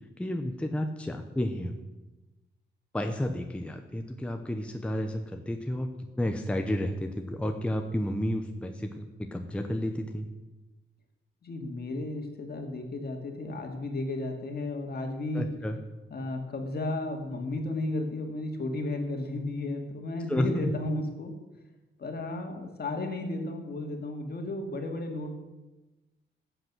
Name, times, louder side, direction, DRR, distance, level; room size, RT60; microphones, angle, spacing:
voice 1, 0.2-1.8 2.9-10.3 15.3-15.8 20.3-20.7, left 1 dB, 5° left, 5 dB, 0.7 m, -31 dB
voice 2, 11.4-15.5 16.1-21.3 22.0-25.3, left 2 dB, 50° left, 3 dB, 2.1 m, -33 dB
14.5 x 8.0 x 6.1 m, 1.1 s
wide cardioid pair, 155°, 20 cm